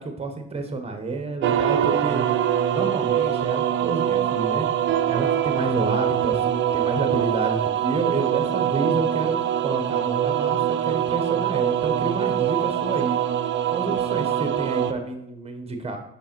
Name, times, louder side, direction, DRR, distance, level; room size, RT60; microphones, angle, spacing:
voice 1, 0.0-2.2 2.7-4.7 5.1-13.2 13.7-16.0, right 3 dB, 20° right, 5 dB, 1.2 m, -29 dB
sound 1, 1.4-14.9, right 10 dB, 40° right, 0.5 m, -23 dB
5.3 x 5.3 x 4.5 m, 0.80 s
supercardioid pair, 75°, 29 cm